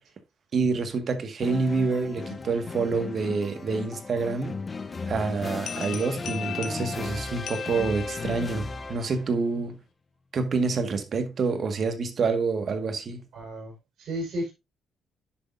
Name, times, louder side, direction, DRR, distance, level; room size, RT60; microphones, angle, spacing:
voice 1, 0.5-4.6 5.1-9.8 10.3-13.2, right 4 dB, 50° right, 1.8 m, -27 dB
sound 1, 1.4-9.3, left 4 dB, 30° left, 0.8 m, -36 dB
sound 2, 5.7-8.6, left 10 dB, 75° left, 1.5 m, -39 dB
voice 2, 13.3-14.5, equal, 75° right, 4.9 m, -33 dB
10.0 x 6.5 x 2.7 m
cardioid pair, 90°, 0 cm